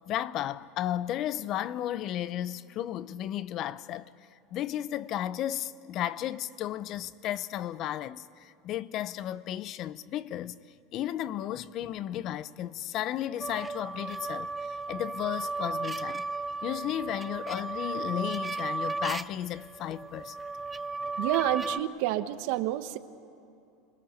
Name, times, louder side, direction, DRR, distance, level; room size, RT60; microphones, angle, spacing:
voice 1, 0.1-10.6 10.9-16.3 16.6-20.4, left 12 dB, 45° left, 0.7 m, -34 dB
sound 1, 13.4-21.8, right 3 dB, 15° right, 0.4 m, -35 dB
voice 2, 21.2-23.0, right 14 dB, 70° right, 1.1 m, -29 dB
27.0 x 20.5 x 6.6 m
supercardioid pair, 130°, 0 cm